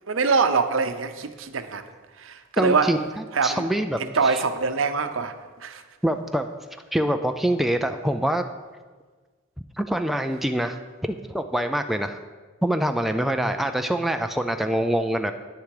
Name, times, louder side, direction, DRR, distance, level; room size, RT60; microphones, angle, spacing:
voice 1, 0.1-1.8 2.2-2.9 3.3-3.7 4.0-5.3 5.6-5.8, right 4 dB, 70° right, 9 dB, 0.8 m, -24 dB
voice 2, 2.6-4.4 6.0-6.5 6.9-8.4 9.8-10.8 11.1-12.2 12.6-15.3, right 1 dB, ahead, 6 dB, 0.4 m, -25 dB
10.0 x 9.8 x 4.8 m, 1.4 s
head